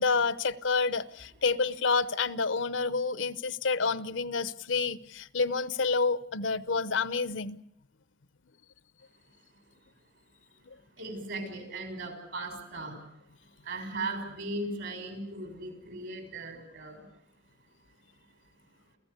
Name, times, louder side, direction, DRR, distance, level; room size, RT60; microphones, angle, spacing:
voice 1, 0.0-7.6, left 4 dB, 75° left, 0.8 m, -29 dB
voice 2, 11.0-13.1 13.6-17.0, right 2 dB, 70° right, 6.3 m, -37 dB
29.0 x 15.5 x 8.2 m
head